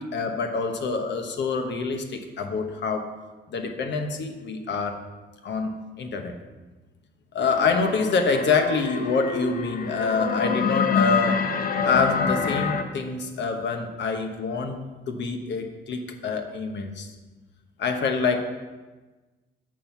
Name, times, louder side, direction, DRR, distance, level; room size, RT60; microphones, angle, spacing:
voice 1, 0.0-3.1 3.5-5.0 5.4-6.4 7.3-11.4 11.8-14.8 15.1-17.1 17.8-18.4, left 4 dB, 65° left, 5 dB, 1.1 m, -26 dB
sound 1, 7.4-12.8, left 5 dB, 45° left, 0.8 m, -26 dB
7.4 x 6.2 x 5.8 m, 1.2 s
cardioid pair, 90°, 20 cm